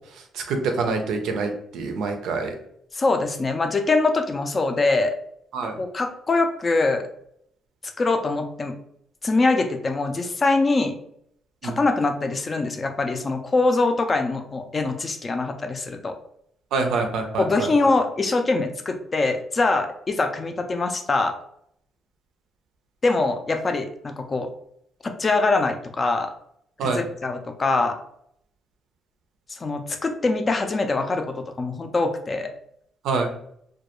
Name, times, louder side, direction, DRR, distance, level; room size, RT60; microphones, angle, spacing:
voice 1, 0.4-2.5 5.5-5.7 11.6-11.8 16.7-17.7 26.8-27.0 33.0-33.3, right 4 dB, 85° right, 5 dB, 0.4 m, -26 dB
voice 2, 2.9-5.1 5.8-7.1 8.0-8.8 9.2-11.0 11.6-16.1 17.4-21.4 23.0-24.5 25.0-26.3 26.8-28.0 29.5-32.5, left 3 dB, 35° left, 6 dB, 0.4 m, -23 dB
2.3 x 2.2 x 2.8 m, 0.71 s
cardioid pair, 90°, 0 cm